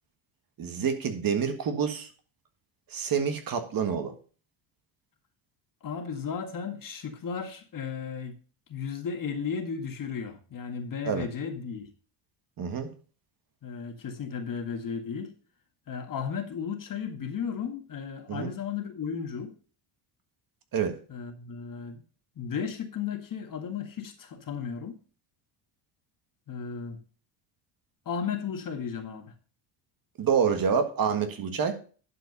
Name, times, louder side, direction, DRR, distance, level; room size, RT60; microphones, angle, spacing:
voice 1, 0.6-2.1 2.9-4.1 11.1-11.3 12.6-12.9 18.3-18.5 20.7-21.0 30.2-31.8, right 6 dB, 45° right, 1.7 m, -27 dB
voice 2, 5.8-8.4 8.7-11.9 13.6-15.3 15.9-19.5 21.1-22.0 22.4-24.9 26.5-27.0 28.1-29.3, left 6 dB, 40° left, 1.8 m, -34 dB
11.0 x 4.9 x 5.4 m
cardioid pair, 125°, 49 cm